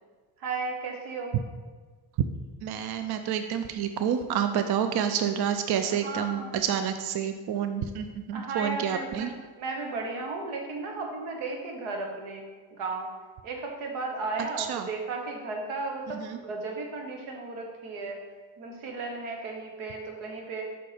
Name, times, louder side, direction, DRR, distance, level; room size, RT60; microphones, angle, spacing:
voice 1, 0.4-1.3 5.8-6.6 8.3-9.3 9.6-12.4 12.7-13.1 13.4-18.2 18.6-20.7, right 3 dB, 85° right, 1 dB, 1.2 m, -35 dB
voice 2, 2.6-9.3 14.6-14.9 16.1-16.4, right 8 dB, 55° right, 8 dB, 0.5 m, -29 dB
5.5 x 4.1 x 4.9 m, 1.4 s
supercardioid pair, 65°, 48 cm